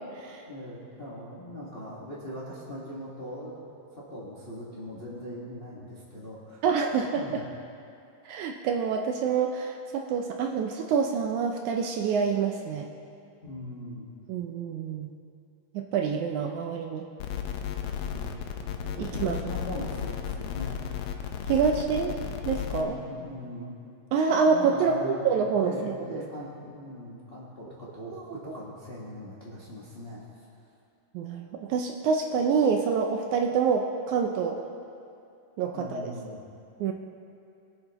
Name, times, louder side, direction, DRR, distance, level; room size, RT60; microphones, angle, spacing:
voice 1, 0.5-3.6 3.9-6.6 7.1-7.4 13.4-14.1 18.1-18.4 19.0-20.8 22.0-23.8 24.4-30.2 35.7-36.4, equal, 40° left, -7 dB, 0.8 m, -40 dB
voice 2, 6.6-7.4 8.3-12.9 14.3-15.1 15.7-17.0 19.0-19.4 21.5-22.1 22.5-23.0 24.1-26.2 28.1-28.4 31.1-34.6 35.6-36.1 36.8-36.9, right 6 dB, 80° right, 3 dB, 1.8 m, -27 dB
sound 1, 17.2-22.8, left 8 dB, 80° left, 1.5 m, -34 dB
22.5 x 8.7 x 3.0 m, 2.5 s
omnidirectional pair, 3.9 m